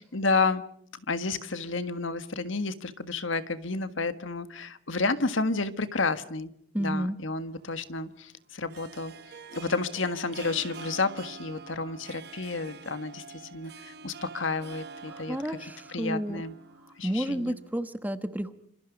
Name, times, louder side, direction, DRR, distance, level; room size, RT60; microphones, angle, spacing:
voice 1, 0.1-0.6 1.0-6.5 6.8-9.1 9.5-13.2 13.5-15.4 15.9-16.5 17.0-17.6, left 3 dB, 75° left, 11 dB, 1.7 m, -30 dB
voice 2, 6.7-7.2 15.1-16.4 16.8-18.5, right 1 dB, 10° right, 10 dB, 1.1 m, -31 dB
Harp, 7.3-17.7, right 5 dB, 50° right, 1.1 m, -47 dB
28.0 x 26.0 x 5.2 m, 0.69 s
head